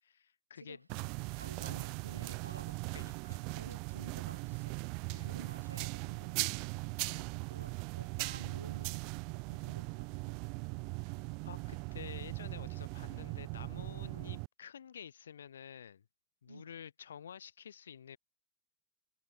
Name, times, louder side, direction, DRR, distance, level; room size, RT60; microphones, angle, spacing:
voice 1, 0.0-0.8 1.6-1.8 2.9-3.4 5.1-5.3 7.1-7.3 11.0-16.1 16.4-18.2, left 8 dB, 65° left, 3.1 m, -50 dB
sound 1, 0.9-14.5, right 35 dB, 45° right, 1.2 m, -39 dB
voice 2, 1.3-3.0 3.5-4.9 5.2-6.8 7.5-10.4 16.5-16.7, right 2 dB, 85° right, 5.9 m, -53 dB
figure-of-eight pair, 90°, 0 cm